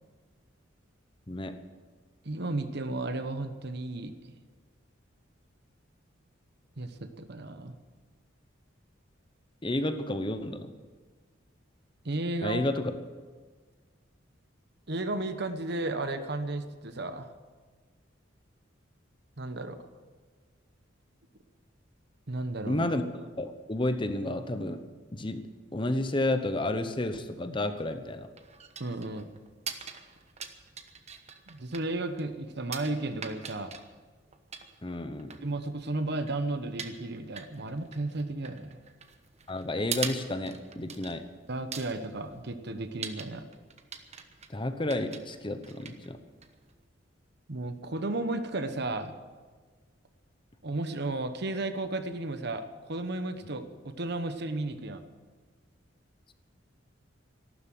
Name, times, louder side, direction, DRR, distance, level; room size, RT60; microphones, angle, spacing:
voice 1, 1.3-1.6 9.6-10.7 12.4-13.0 22.7-24.9 25.1-28.3 34.8-35.4 39.5-41.3 44.5-46.2, left 1 dB, 25° left, 9 dB, 0.9 m, -31 dB
voice 2, 2.2-4.1 6.8-7.7 12.0-12.6 14.9-17.3 19.4-19.8 22.3-22.9 28.8-29.3 31.5-33.7 35.4-38.8 41.5-43.5 47.5-49.1 50.6-55.0, right 2 dB, 60° right, 9 dB, 1.1 m, -34 dB
sound 1, 27.8-46.8, right 7 dB, 35° right, 1.1 m, -44 dB
14.0 x 12.5 x 7.6 m, 1.5 s
head